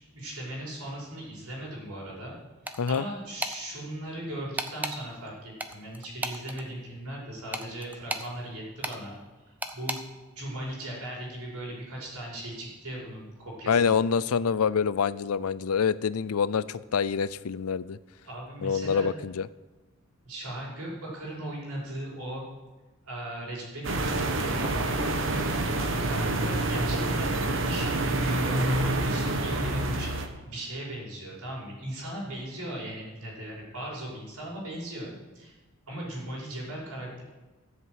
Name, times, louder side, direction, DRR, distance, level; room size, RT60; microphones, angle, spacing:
voice 1, 0.1-2.4 2.9-9.1 9.5-10.0 10.4-14.0 18.2-19.1 20.2-22.4 23.0-27.4 27.7-35.6 35.9-37.2, right 1 dB, 90° right, -4 dB, 5.5 m, -38 dB
sound 1, 2.7-3.0 3.4-3.6 4.6-5.0 5.6-6.6 7.5-8.3 8.8-9.0 9.6-10.0, right 1 dB, 5° right, 0.7 m, -33 dB
voice 2, 13.7-18.0 18.6-19.5, left 6 dB, 85° left, 17 dB, 0.5 m, -26 dB
sound 2, 23.8-30.3, right 2 dB, 60° right, 1.2 m, -27 dB
14.0 x 7.4 x 8.1 m, 1.2 s
head